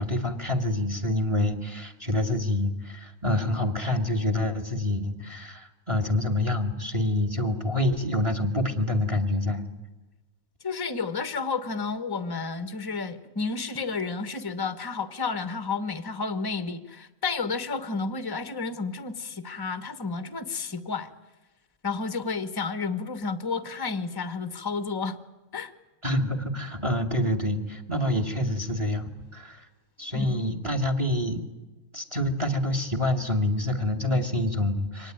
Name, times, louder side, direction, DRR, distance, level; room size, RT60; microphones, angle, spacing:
voice 1, 0.0-9.6 26.0-29.6 30.0-31.4 31.9-35.1, left 1 dB, 20° right, 7 dB, 2.0 m, -27 dB
voice 2, 10.6-21.1 21.8-25.2 25.5-25.7 30.1-30.4, left 4 dB, 15° left, 11 dB, 1.2 m, -31 dB
24.5 x 19.5 x 9.2 m, 1.1 s
omnidirectional pair, 1.6 m